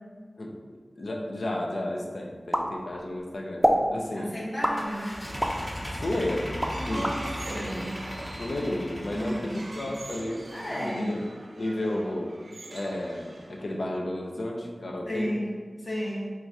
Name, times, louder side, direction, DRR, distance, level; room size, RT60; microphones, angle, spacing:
voice 1, 1.0-4.4 5.8-7.2 8.4-10.4 10.7-11.3 11.6-12.3 12.7-15.3, left 1 dB, 75° left, 0 dB, 0.4 m, -32 dB
sound 1, 2.5-3.2 3.6-3.9 4.6-5.6 6.1-7.2, equal, 5° right, 0.4 m, -25 dB
voice 2, 4.2-5.2 6.7-8.0 9.1-9.7 10.5-11.2 15.1-15.5 15.8-16.3, equal, 55° left, -6 dB, 1.4 m, -33 dB
sound 2, 4.7-10.3, equal, 25° left, 0.9 m, -37 dB
sound 3, 6.5-13.8, right 1 dB, 75° right, 0.5 m, -43 dB
4.4 x 2.4 x 4.0 m, 1.5 s
wide cardioid pair, 55°, 0 cm